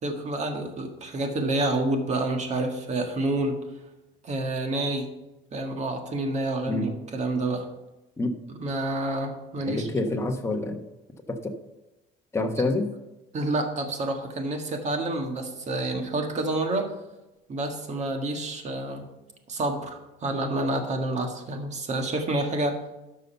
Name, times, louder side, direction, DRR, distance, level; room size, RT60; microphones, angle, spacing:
voice 1, 0.0-3.6 4.2-5.1 5.5-7.7 8.6-9.9 13.3-16.9 17.5-19.1 19.5-22.8, right 2 dB, 35° right, 4 dB, 1.7 m, -28 dB
voice 2, 9.7-10.8 11.3-11.5 12.3-12.9, left 2 dB, 15° left, 3 dB, 1.2 m, -27 dB
12.5 x 5.5 x 5.6 m, 1.0 s
cardioid pair, 130°, 20 cm